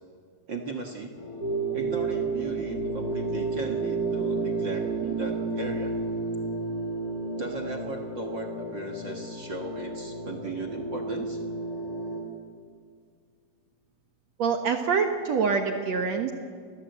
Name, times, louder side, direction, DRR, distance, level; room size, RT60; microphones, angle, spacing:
voice 1, 0.5-1.2 1.7-6.0 7.4-11.4, right 3 dB, 45° right, 2 dB, 1.5 m, -36 dB
sound 1, 1.2-12.2, equal, 70° left, 5.7 m, -35 dB
sound 2, 1.4-7.5, right 5 dB, 20° right, 3.6 m, -31 dB
voice 2, 14.4-16.3, right 5 dB, 60° right, 5 dB, 1.9 m, -25 dB
29.0 x 21.0 x 8.1 m, 2.1 s
omnidirectional pair, 4.6 m